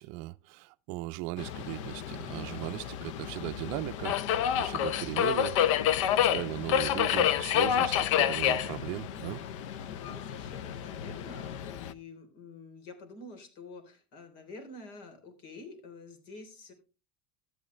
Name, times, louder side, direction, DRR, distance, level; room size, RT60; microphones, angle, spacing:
voice 1, 0.0-5.8 6.2-9.4, right 18 dB, 65° right, 0.5 m, -38 dB
Subway metro underground, 1.4-11.9, left 10 dB, 85° left, 0.7 m, -29 dB
voice 2, 9.9-16.7, left 3 dB, 60° left, 3.5 m, -48 dB
12.5 x 9.0 x 3.2 m
supercardioid pair, 140°, 16 cm